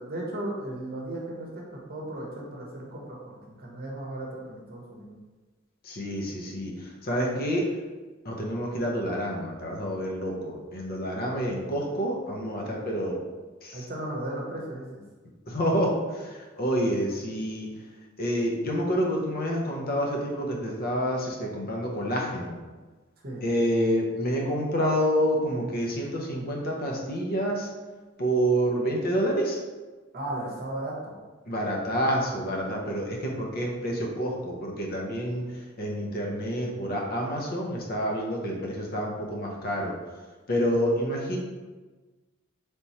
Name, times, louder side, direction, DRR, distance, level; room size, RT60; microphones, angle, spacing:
voice 1, 0.0-5.2 13.7-15.0 23.2-23.4 30.1-31.2, right 1 dB, 45° right, -2 dB, 0.9 m, -36 dB
voice 2, 5.8-7.7 8.2-13.2 13.6-13.8 15.5-17.7 18.2-22.6 23.4-27.7 28.2-29.6 31.5-35.4 35.8-39.9 40.5-41.4, equal, 45° left, -1 dB, 0.7 m, -28 dB
3.5 x 3.0 x 4.1 m, 1.3 s
head